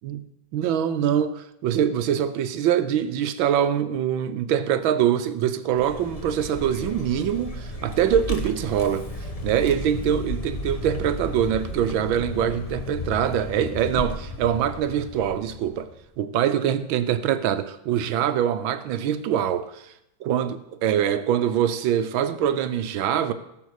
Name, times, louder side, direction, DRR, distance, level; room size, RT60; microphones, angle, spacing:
voice 1, 0.5-9.1 9.4-15.9 16.2-19.8 20.3-23.3, right 9 dB, 80° right, 1.6 m, -24 dB
Vehicle, 5.7-16.0, left 1 dB, 25° left, 0.8 m, -34 dB
16.5 x 7.0 x 6.4 m
omnidirectional pair, 2.2 m